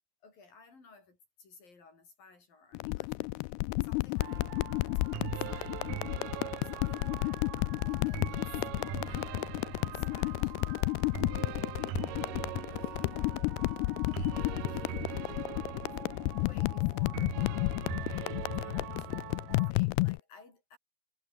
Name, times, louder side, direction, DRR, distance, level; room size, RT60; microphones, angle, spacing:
voice 1, 0.2-5.9 6.3-7.6 7.8-13.2 13.8-15.6 15.9-20.8, left 4 dB, 60° left, 9.7 m, -57 dB
sound 1, 2.7-20.2, left 23 dB, 85° left, 2.5 m, -32 dB
sound 2, 4.2-19.7, right 16 dB, 75° right, 2.1 m, -42 dB
omnidirectional pair, 4.6 m